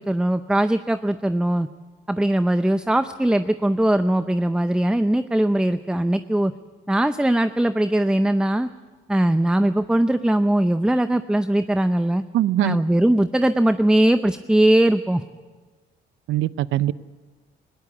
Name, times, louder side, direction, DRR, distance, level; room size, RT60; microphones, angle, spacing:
voice 1, 0.0-1.7 2.1-6.5 6.9-8.7 9.1-12.2 12.6-15.2, right 1 dB, 5° right, 11 dB, 0.6 m, -20 dB
voice 2, 12.3-12.8 16.3-16.9, right 13 dB, 80° right, 18 dB, 0.6 m, -21 dB
19.5 x 17.5 x 8.3 m, 1.4 s
cardioid pair, 90°, 20 cm